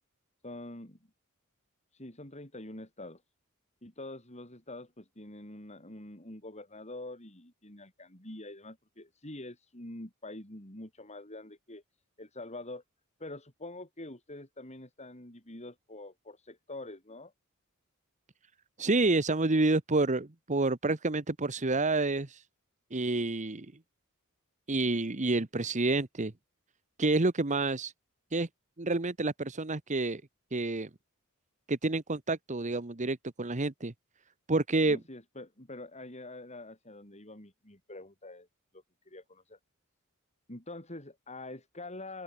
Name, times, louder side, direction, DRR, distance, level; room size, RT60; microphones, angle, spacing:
voice 1, 0.4-1.0 1.9-3.2 3.8-11.8 12.2-12.8 13.2-17.3 34.8-38.5 38.7-39.6 40.5-42.2, left 2 dB, 30° left, 6.7 m, -45 dB
voice 2, 18.8-22.4 22.9-23.7 24.7-26.3 27.0-27.9 28.3-28.5 28.8-30.2 30.5-30.9 31.7-33.9 34.5-35.0, right 2 dB, 35° right, 1.2 m, -28 dB
open air
head